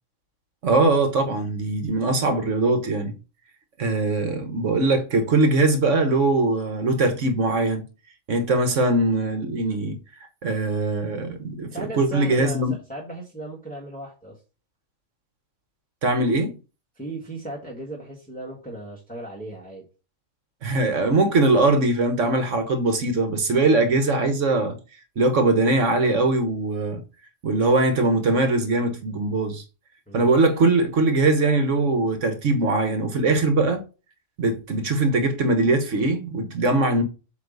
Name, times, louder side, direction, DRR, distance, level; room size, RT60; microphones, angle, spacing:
voice 1, 0.6-3.1 3.8-7.8 8.3-10.0 10.4-12.7 16.0-16.5 20.6-24.8 25.2-27.0 27.4-29.6 30.1-33.8 34.4-37.0, right 2 dB, 70° right, 1.4 m, -21 dB
voice 2, 11.7-14.4 16.9-19.9 30.1-30.3, right 1 dB, 5° left, 1.6 m, -36 dB
8.0 x 3.1 x 5.3 m
omnidirectional pair, 1.4 m